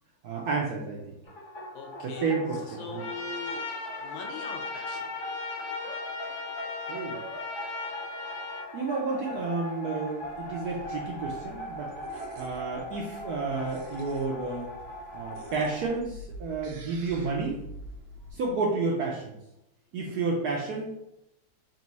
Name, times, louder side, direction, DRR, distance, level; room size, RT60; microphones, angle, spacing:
voice 1, 0.2-1.1 2.0-3.1 6.9-7.2 8.7-14.7 15.1-17.6 18.3-19.4 19.9-20.9, right 4 dB, 70° right, -1 dB, 0.9 m, -31 dB
sound 1, 1.3-15.9, left 1 dB, 35° left, 1.0 m, -40 dB
voice 2, 1.7-2.3 2.8-3.7 4.0-5.1, left 4 dB, 90° left, 4 dB, 1.5 m, -41 dB
Trumpet, 3.0-8.7, left 3 dB, 65° left, 1.3 m, -37 dB
sound 2, 10.2-18.3, right 1 dB, 85° right, 1.7 m, -47 dB
4.2 x 2.3 x 4.0 m, 0.83 s
omnidirectional pair, 2.3 m